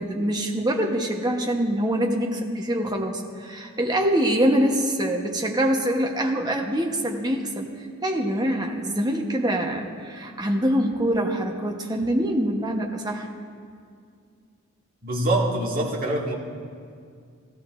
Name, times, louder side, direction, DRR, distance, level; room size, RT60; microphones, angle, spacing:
voice 1, 0.0-13.3, right 1 dB, 20° right, 1 dB, 1.0 m, -24 dB
voice 2, 15.0-16.3, right 1 dB, 40° right, -4 dB, 2.0 m, -24 dB
16.0 x 14.0 x 2.5 m, 2.3 s
head